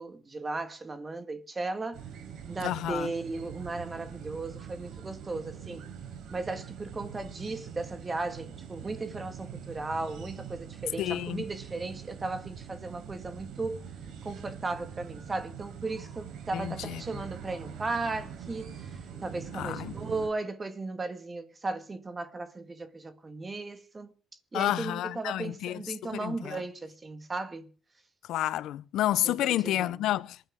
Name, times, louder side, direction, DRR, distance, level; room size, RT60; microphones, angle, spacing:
voice 1, 0.0-2.0 2.5-5.8 6.3-13.8 14.2-24.1 24.5-27.7 29.2-30.0, right 3 dB, 20° right, 1.8 m, -36 dB
sound 1, 1.9-20.3, right 8 dB, 75° right, 4.0 m, -44 dB
voice 2, 2.6-3.1 11.0-11.4 16.5-17.2 19.5-19.9 24.5-26.6 28.3-30.5, left 13 dB, 85° left, 0.6 m, -30 dB
26.5 x 11.5 x 3.6 m
cardioid pair, 160°, 0 cm